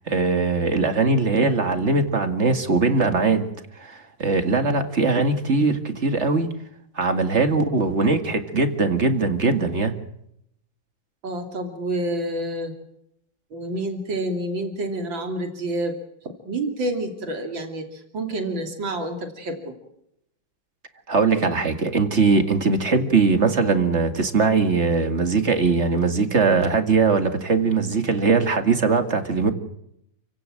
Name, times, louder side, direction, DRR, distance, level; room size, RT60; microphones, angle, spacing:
voice 1, 0.1-3.5 3.8-6.5 7.0-9.9 21.1-29.5, right 4 dB, 35° right, 7 dB, 2.3 m, -21 dB
voice 2, 11.2-12.7 13.5-16.0 16.2-19.8, right 1 dB, 90° right, 4 dB, 3.6 m, -28 dB
29.0 x 17.0 x 7.6 m, 0.77 s
omnidirectional pair, 2.0 m